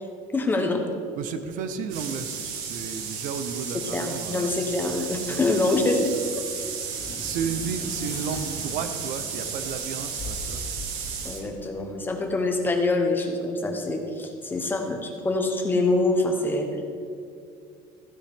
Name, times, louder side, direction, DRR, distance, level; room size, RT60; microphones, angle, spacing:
voice 1, 0.3-0.8 3.7-6.1 11.2-16.7, left 2 dB, 15° left, 3 dB, 0.9 m, -25 dB
voice 2, 1.2-4.6 5.3-5.4 6.6-10.6 11.1-11.4, right 6 dB, 55° right, 9 dB, 0.7 m, -33 dB
sound 1, 1.9-11.4, right 6 dB, 75° right, 1.5 m, -34 dB
sound 2, 7.0-12.1, left 2 dB, 30° left, 3.1 m, -40 dB
14.5 x 9.9 x 3.6 m, 2.4 s
cardioid pair, 165°, 16 cm